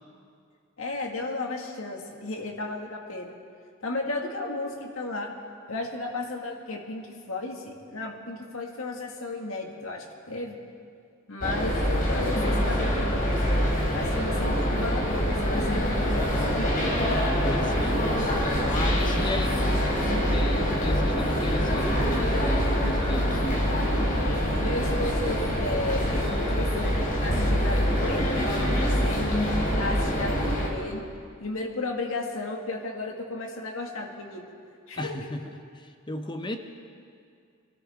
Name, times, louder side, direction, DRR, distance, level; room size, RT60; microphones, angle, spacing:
voice 1, 0.8-3.3 3.8-5.3 5.7-10.6 11.3-13.6 13.9-16.7 24.4-29.2 29.8-31.0 31.4-34.5 34.9-35.3, left 2 dB, 75° left, 1 dB, 1.9 m, -34 dB
sound 1, 11.4-30.7, equal, 40° left, 3.1 m, -25 dB
voice 2, 17.4-18.3 18.6-23.7 28.5-29.1 30.1-30.2 35.0-36.6, left 1 dB, 20° left, 6 dB, 0.7 m, -35 dB
25.0 x 13.0 x 3.6 m, 2.3 s
head